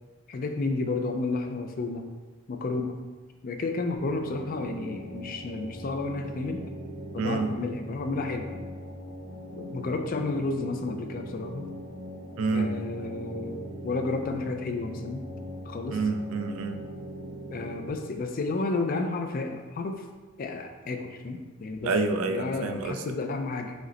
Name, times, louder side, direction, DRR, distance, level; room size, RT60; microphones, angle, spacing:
voice 1, 0.3-2.0 2.5-3.0 3.4-6.6 7.1-8.6 9.5-11.7 12.5-15.2 15.7-16.0 17.5-20.0 20.4-21.9 22.3-23.7, left 3 dB, 40° left, 5 dB, 0.4 m, -31 dB
sound 1, 4.0-17.9, equal, 65° left, 1.4 m, -40 dB
voice 2, 7.2-7.5 12.4-12.7 15.9-16.8 21.8-23.0, right 3 dB, 85° right, 6 dB, 0.4 m, -28 dB
4.9 x 2.1 x 4.0 m, 1.3 s
head